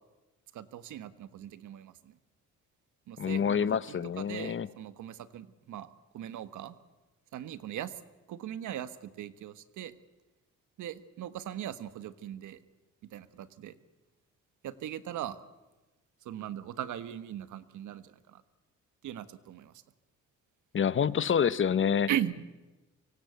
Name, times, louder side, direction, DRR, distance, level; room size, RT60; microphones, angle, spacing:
voice 1, 0.5-1.9 3.1-5.9 6.1-6.7 7.3-7.9 8.3-9.9 10.8-12.6 13.0-13.7 14.6-15.4 16.2-18.4 19.0-19.7 22.1-22.4, right 11 dB, 75° right, 13 dB, 1.5 m, -39 dB
voice 2, 3.2-4.7 20.7-22.1, left 7 dB, 40° left, 17 dB, 1.0 m, -27 dB
24.5 x 24.0 x 8.3 m, 1.1 s
cardioid pair, 90°, 30 cm